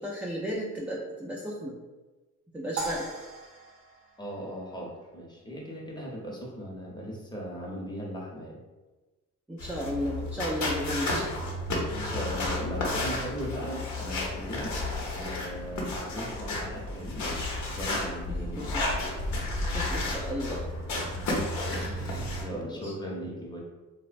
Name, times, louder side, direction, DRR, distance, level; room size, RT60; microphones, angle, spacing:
voice 1, 0.0-1.7 2.5-3.1 9.5-11.3 18.3-18.8 19.7-20.6 21.6-22.0 22.6-22.9, equal, 5° right, -4 dB, 0.3 m, -34 dB
sound 1, 2.8-5.1, right 3 dB, 50° right, 0.6 m, -39 dB
voice 2, 4.2-8.6 11.9-14.7 15.1-17.3 17.7-18.8 21.0-21.4 21.7-23.6, equal, 15° left, -3 dB, 0.8 m, -38 dB
sound 2, 9.6-22.4, left 2 dB, 70° left, 0.8 m, -32 dB
3.1 x 2.1 x 2.5 m, 1.2 s
cardioid pair, 90°, 30 cm